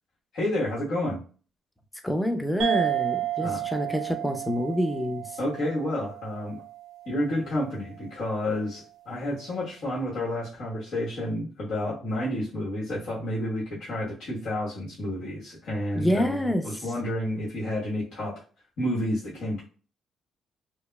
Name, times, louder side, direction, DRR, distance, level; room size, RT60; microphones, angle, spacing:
voice 1, 0.3-1.2 3.4-3.6 5.4-6.6 7.1-18.4 18.8-19.6, left 1 dB, 65° left, -7 dB, 1.3 m, -30 dB
voice 2, 2.0-5.3 15.9-16.6, equal, 5° left, 5 dB, 0.6 m, -27 dB
sound 1, 2.6-7.5, right 13 dB, 80° right, 0.5 m, -32 dB
5.0 x 2.0 x 2.3 m, 0.39 s
cardioid pair, 90°, 0 cm